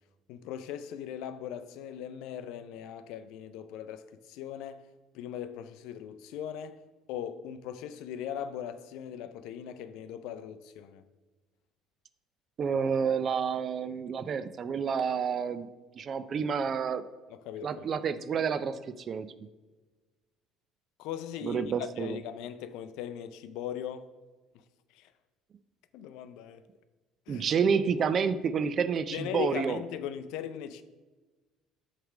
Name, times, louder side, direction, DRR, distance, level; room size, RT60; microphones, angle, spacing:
voice 1, 0.3-4.8 5.1-6.8 7.1-11.0 17.3-17.8 21.0-24.1 24.9-25.1 25.9-26.6 27.3-27.5 29.1-30.8, left 9 dB, 75° left, 0.4 m, -39 dB
voice 2, 12.6-15.7 16.0-17.0 17.6-18.8 19.1-19.3 21.4-22.2 27.3-29.8, right 6 dB, 45° right, 0.4 m, -29 dB
7.8 x 3.3 x 4.9 m
supercardioid pair, 80°, 0 cm